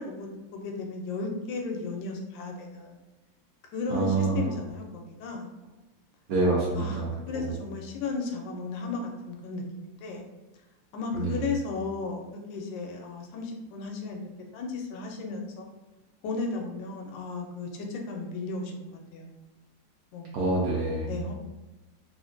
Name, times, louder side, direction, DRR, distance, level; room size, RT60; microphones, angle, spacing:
voice 1, 0.0-3.0 3.7-5.5 6.7-7.0 7.3-10.2 10.9-14.2 14.5-15.7 16.2-19.4 20.1-20.4 21.1-21.3, left 3 dB, 80° left, 1 dB, 1.3 m, -35 dB
voice 2, 3.9-4.5 6.3-7.5 11.1-11.4 20.3-21.2, right 2 dB, 65° right, -5 dB, 0.9 m, -27 dB
3.4 x 2.1 x 2.4 m, 1.1 s
omnidirectional pair, 2.0 m